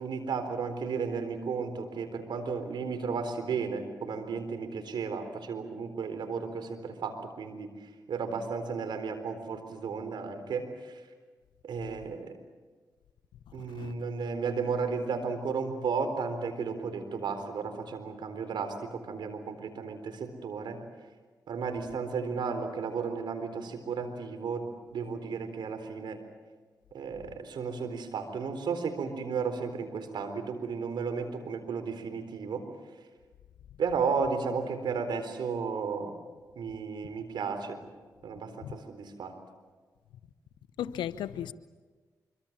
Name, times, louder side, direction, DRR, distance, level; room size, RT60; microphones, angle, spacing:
voice 1, 0.0-11.0 11.6-12.4 13.5-20.8 21.5-26.2 26.9-32.7 33.8-36.2 36.6-37.8 38.2-39.4, right 5 dB, 75° right, 4.0 m, -34 dB
voice 2, 13.6-13.9 38.6-38.7 40.8-41.5, left 10 dB, 90° left, 1.0 m, -36 dB
25.5 x 25.0 x 7.5 m
supercardioid pair, 45°, 8 cm